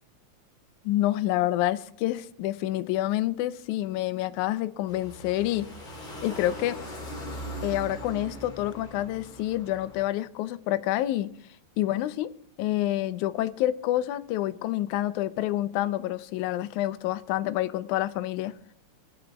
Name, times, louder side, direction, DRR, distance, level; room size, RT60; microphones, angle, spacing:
voice 1, 0.9-5.7 6.2-6.8 7.6-11.3 11.8-12.3 12.6-18.6, left 14 dB, 80° left, 2.0 m, -28 dB
sound 1, 4.9-10.1, right 1 dB, 30° left, 3.6 m, -40 dB
23.0 x 7.9 x 3.4 m
omnidirectional pair, 3.5 m